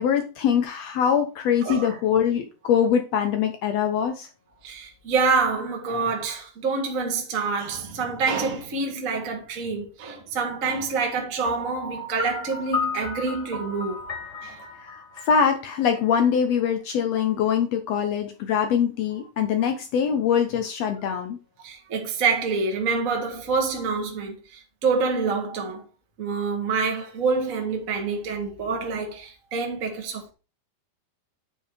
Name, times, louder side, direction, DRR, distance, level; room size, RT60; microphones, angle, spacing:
voice 1, 0.0-4.3 14.8-21.4, left 8 dB, 85° left, 1.4 m, -23 dB
voice 2, 4.6-14.0 14.4-14.6 21.6-25.8 26.2-30.3, right 4 dB, 30° right, 1.6 m, -27 dB
Piano, 11.4-16.3, left 3 dB, 25° left, 1.9 m, -33 dB
9.9 x 4.6 x 5.0 m
omnidirectional pair, 4.2 m